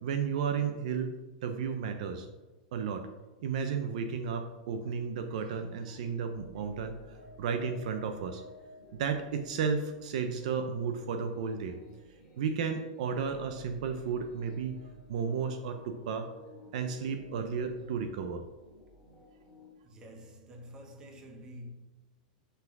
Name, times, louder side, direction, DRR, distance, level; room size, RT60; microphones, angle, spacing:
voice 1, 0.0-1.2 1.4-2.3 2.7-3.1 3.4-7.0 7.4-8.4 8.9-11.8 12.4-14.8 15.1-16.3 16.7-18.4, right 6 dB, 60° right, 0.7 m, -33 dB
sound 1, 5.7-19.7, left 2 dB, 5° left, 2.4 m, -54 dB
voice 2, 19.8-21.7, equal, 15° right, 1.1 m, -48 dB
5.9 x 5.7 x 6.0 m
supercardioid pair, 165°, 4 cm